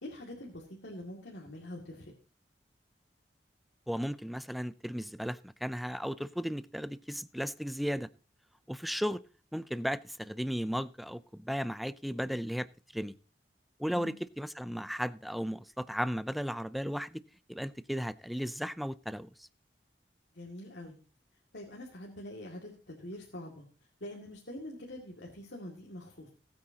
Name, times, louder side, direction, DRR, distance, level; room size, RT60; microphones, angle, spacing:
voice 1, 0.0-2.1 13.9-14.2 20.3-21.0 21.5-23.6 24.0-26.3, left 1 dB, 85° left, 2.3 m, -45 dB
voice 2, 3.9-8.1 8.7-9.2 9.5-12.7 12.9-13.2 13.8-17.2 17.5-19.3, equal, ahead, 0.4 m, -35 dB
19.5 x 8.8 x 2.9 m
head